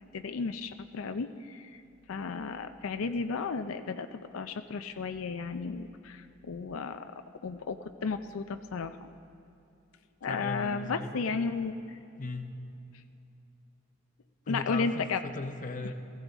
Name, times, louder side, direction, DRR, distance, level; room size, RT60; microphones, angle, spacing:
voice 1, 0.1-1.8 2.1-9.1 10.2-11.7 14.5-15.2, left 4 dB, 85° left, 8 dB, 0.5 m, -34 dB
voice 2, 10.2-11.5 12.2-12.5 14.5-15.9, left 3 dB, 40° left, 7 dB, 0.8 m, -38 dB
18.0 x 15.0 x 4.0 m, 2.8 s
head